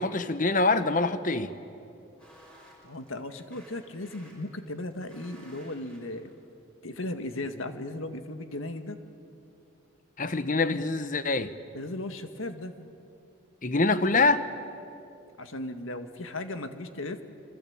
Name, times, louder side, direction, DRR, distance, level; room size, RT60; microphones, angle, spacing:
voice 1, 0.0-1.5 10.2-11.5 13.6-14.5, left 3 dB, 40° left, 1.1 m, -25 dB
sound 1, 2.2-6.4, right 1 dB, 5° left, 5.8 m, -55 dB
voice 2, 2.8-6.3 6.8-9.0 11.7-12.7 15.4-17.2, left 2 dB, 80° left, 1.8 m, -36 dB
26.5 x 24.5 x 8.7 m
head